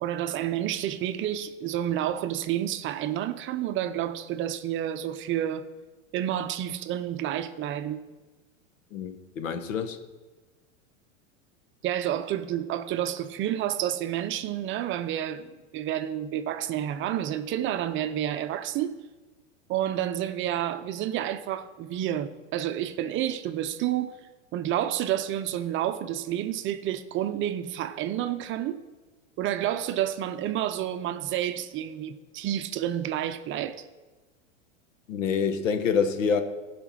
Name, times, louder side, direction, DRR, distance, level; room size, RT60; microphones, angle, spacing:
voice 1, 0.0-5.7 6.1-8.0 11.8-15.5 15.7-19.0 19.7-24.2 24.5-28.8 29.4-33.9, right 11 dB, 30° right, 0.6 m, -29 dB
voice 2, 8.9-10.0 35.1-36.4, left 6 dB, 80° left, 1.4 m, -26 dB
15.5 x 5.2 x 6.2 m
hypercardioid pair, 120°, 38 cm